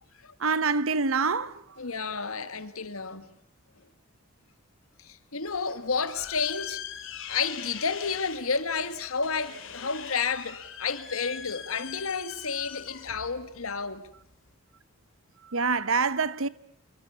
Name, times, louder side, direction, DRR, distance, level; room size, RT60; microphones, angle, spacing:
voice 1, 0.4-1.6 15.4-16.5, right 4 dB, 75° right, 1.0 m, -26 dB
voice 2, 1.8-3.3 5.0-6.8 7.3-14.1, left 5 dB, 85° left, 1.7 m, -31 dB
sound 1, 5.4-14.5, left 8 dB, 65° left, 2.8 m, -42 dB
26.0 x 24.0 x 7.0 m
head